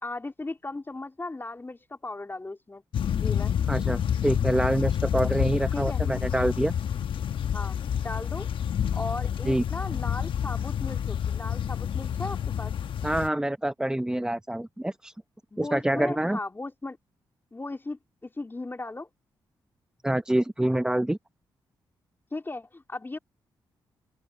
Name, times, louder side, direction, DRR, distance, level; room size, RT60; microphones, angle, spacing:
voice 1, 0.0-2.8 3.1-3.5 5.7-6.0 7.5-8.5 8.9-12.7 15.5-17.0 17.5-19.1 22.3-23.2, left 2 dB, 25° left, 2.8 m, -37 dB
sound 1, 2.9-13.3, left 9 dB, 70° left, 1.1 m, -28 dB
voice 2, 3.7-6.7 9.5-9.6 13.0-15.1 15.6-16.4 20.0-21.2, right 1 dB, 10° right, 0.9 m, -26 dB
open air
supercardioid pair, 60°, 9 cm